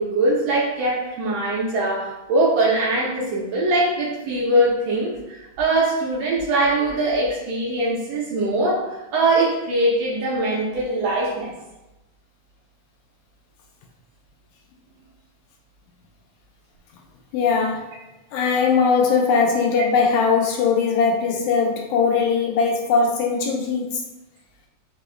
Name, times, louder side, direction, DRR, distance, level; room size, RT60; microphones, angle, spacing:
voice 1, 0.0-8.8 9.1-11.5 19.7-19.8, right 2 dB, 70° right, -4 dB, 1.6 m, -22 dB
voice 2, 17.3-17.8 18.3-24.0, left 5 dB, 80° left, 1 dB, 1.7 m, -20 dB
6.1 x 2.2 x 3.2 m, 1.0 s
omnidirectional pair, 3.6 m